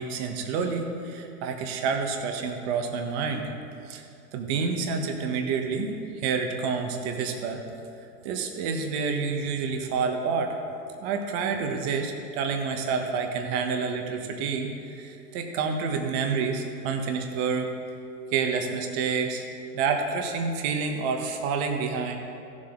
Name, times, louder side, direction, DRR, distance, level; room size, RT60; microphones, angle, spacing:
voice 1, 0.0-3.5 3.9-4.0 4.3-7.6 8.2-10.6 11.0-17.7 18.3-19.4 19.7-22.2, right 5 dB, 40° right, 4 dB, 1.4 m, -28 dB
15.5 x 7.5 x 3.9 m, 2.6 s
hypercardioid pair, 125°, 48 cm